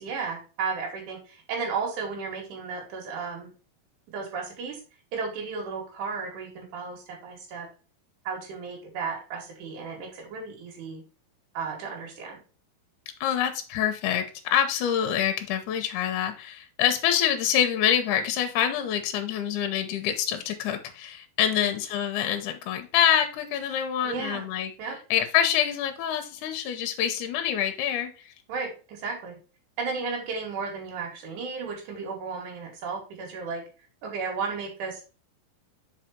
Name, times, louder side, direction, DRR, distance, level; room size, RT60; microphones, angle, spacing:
voice 1, 0.0-3.5 4.1-4.8 5.1-7.7 8.2-11.0 11.5-12.4 21.5-21.8 24.0-24.5 24.8-25.0 28.5-29.4 29.8-33.6 34.0-35.1, right 5 dB, 60° right, -1 dB, 3.1 m, -34 dB
voice 2, 13.2-24.7 25.1-28.3, left 9 dB, 75° left, 7 dB, 1.9 m, -26 dB
5.1 x 4.9 x 4.2 m, 0.35 s
omnidirectional pair, 4.3 m